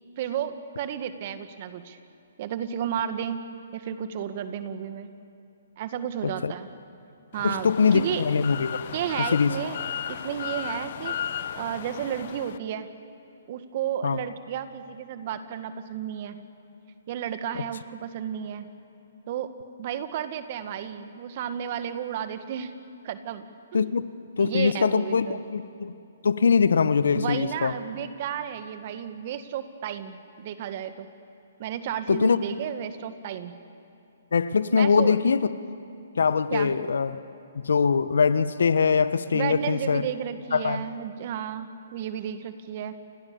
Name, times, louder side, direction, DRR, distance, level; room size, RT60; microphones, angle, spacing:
voice 1, 0.2-2.0 2.4-3.4 3.7-5.1 5.8-6.7 7.3-8.2 8.9-9.8 10.1-11.1 11.6-12.9 13.5-16.4 17.1-18.7 19.3-19.5 19.8-22.7 23.0-23.9 24.4-25.4 27.1-31.1 31.6-33.6 34.7-35.2 36.5-36.7 39.3-42.9, right 9 dB, 45° right, 9 dB, 1.9 m, -32 dB
sound 1, 7.3-12.6, left 9 dB, 55° left, 0.9 m, -35 dB
voice 2, 7.4-8.9 9.3-9.6 14.0-14.2 17.5-17.6 23.7-24.1 24.4-25.9 26.2-27.7 32.1-32.4 34.3-35.5 36.2-37.2 37.5-40.1 40.5-40.8, left 5 dB, 75° left, 14 dB, 1.2 m, -22 dB
30.0 x 26.0 x 7.1 m, 2.7 s
hypercardioid pair, 130°, 0 cm